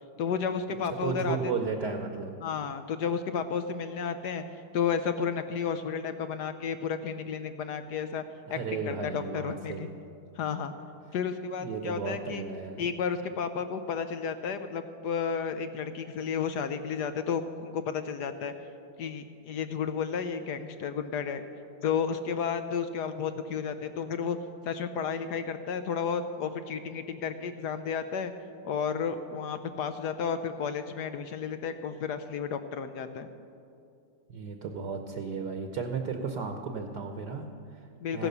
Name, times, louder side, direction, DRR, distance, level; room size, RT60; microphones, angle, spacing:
voice 1, 0.2-1.5 2.4-4.4 4.7-8.2 8.5-9.9 10.4-10.7 11.1-12.4 12.8-18.5 19.0-21.4 21.8-24.4 24.6-28.3 28.6-33.3 38.0-38.3, left 6 dB, 70° left, 9 dB, 1.0 m, -32 dB
voice 2, 1.0-2.4 8.5-9.9 11.6-12.8 34.3-37.9 38.1-38.3, right 5 dB, 60° right, 5 dB, 1.3 m, -34 dB
15.5 x 10.5 x 6.7 m, 2.5 s
omnidirectional pair, 2.4 m